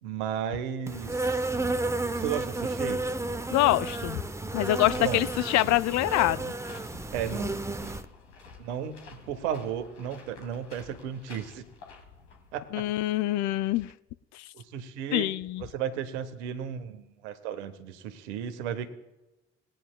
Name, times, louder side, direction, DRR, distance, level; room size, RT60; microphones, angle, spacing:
voice 1, 0.0-1.5 2.1-3.0 5.0-5.3 7.1-7.9 8.6-11.6 12.5-12.8 14.5-15.3 15.6-18.9, right 9 dB, 70° right, 9 dB, 1.1 m, -34 dB
Insect, 0.9-8.0, right 2 dB, 10° right, 0.7 m, -32 dB
voice 2, 3.5-4.2 4.5-6.5 12.7-13.9 14.3-14.5 15.1-15.6, left 16 dB, 55° left, 17 dB, 0.5 m, -25 dB
sound 1, 4.5-12.9, left 5 dB, 75° left, 1.8 m, -50 dB
20.5 x 9.0 x 2.3 m, 0.99 s
figure-of-eight pair, 40°, 35 cm